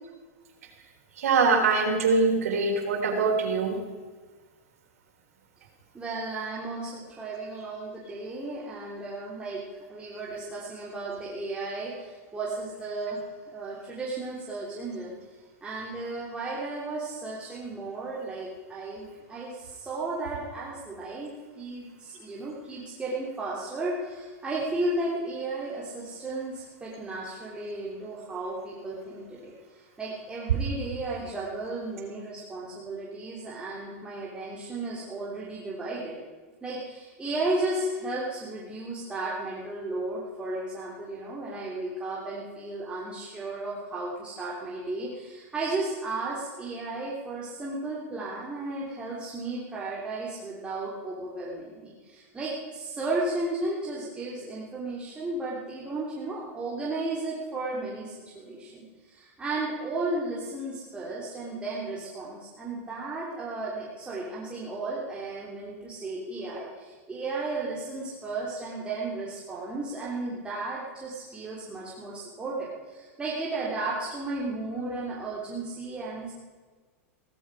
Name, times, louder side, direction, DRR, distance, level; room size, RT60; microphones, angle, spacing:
voice 1, 1.2-3.8, right 4 dB, 80° right, 3 dB, 3.5 m, -23 dB
voice 2, 5.9-9.6 9.9-13.2 13.5-15.1 15.6-29.5 30.0-36.2 36.6-76.3, right 2 dB, 15° right, -6 dB, 3.4 m, -34 dB
16.5 x 14.5 x 4.9 m, 1.4 s
hypercardioid pair, 125°, 8 cm